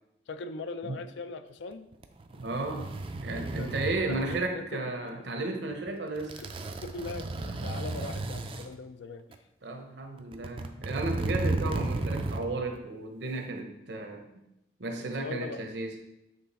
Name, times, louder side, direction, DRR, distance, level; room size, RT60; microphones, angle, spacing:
voice 1, 0.3-1.9 3.6-4.8 6.4-6.5 6.8-9.4 15.0-15.7, left 3 dB, 75° left, 11 dB, 0.4 m, -40 dB
sound 1, 1.9-4.4 5.7-5.9 6.2-8.7 9.3-9.4 10.2-12.5 12.7-12.8, right 2 dB, 30° right, 0.3 m, -34 dB
voice 2, 2.4-2.9 3.2-6.4 9.6-14.2 14.8-16.0, right 2 dB, 65° right, 4 dB, 0.8 m, -34 dB
7.7 x 3.3 x 4.1 m, 0.87 s
head